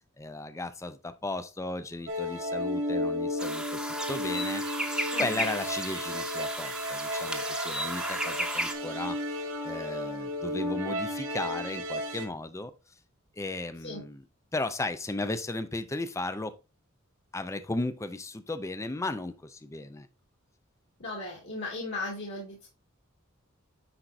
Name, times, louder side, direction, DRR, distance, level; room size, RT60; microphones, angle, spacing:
voice 1, 0.2-3.6 4.1-4.6 5.2-9.2 9.6-12.7 13.4-14.2 14.5-16.5 17.3-20.1, left 2 dB, 15° left, 11 dB, 0.5 m, -35 dB
sound 1, 2.1-12.3, equal, 65° right, 1.5 m, -33 dB
sound 2, 3.4-8.7, right 1 dB, 5° right, 1.0 m, -34 dB
voice 2, 5.1-5.4 13.8-14.0 21.0-22.7, left 2 dB, 60° left, -3 dB, 2.1 m, -37 dB
9.9 x 4.5 x 2.6 m, 0.28 s
head